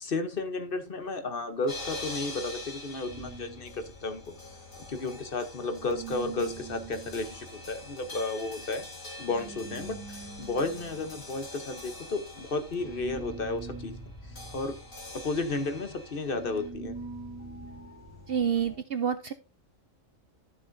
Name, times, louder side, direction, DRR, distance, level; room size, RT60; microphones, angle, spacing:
voice 1, 0.0-4.3 4.9-8.9 9.2-10.0 10.4-14.0 14.5-14.8 15.2-17.0, left 3 dB, 45° left, 1.1 m, -33 dB
sound 1, 1.7-16.7, left 2 dB, 70° left, 4.0 m, -45 dB
sound 2, 3.1-5.4 5.7-18.8, right 3 dB, 10° left, 5.5 m, -45 dB
voice 2, 18.3-19.3, right 8 dB, 60° right, 0.6 m, -28 dB
12.5 x 6.9 x 2.6 m
omnidirectional pair, 1.4 m